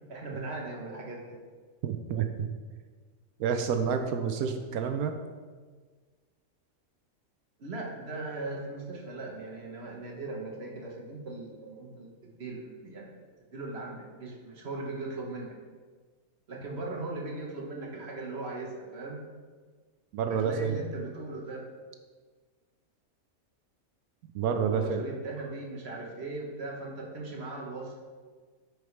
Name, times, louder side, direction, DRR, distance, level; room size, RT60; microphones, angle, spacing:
voice 1, 0.1-1.4 7.6-13.2 13.5-15.5 16.5-19.2 20.3-21.6 24.6-28.0, right 2 dB, 50° right, -1 dB, 1.2 m, -39 dB
voice 2, 1.8-2.5 3.4-5.1 20.1-20.8 24.3-25.0, right 7 dB, 80° right, 6 dB, 1.0 m, -29 dB
9.4 x 4.9 x 3.2 m, 1.5 s
omnidirectional pair, 1.5 m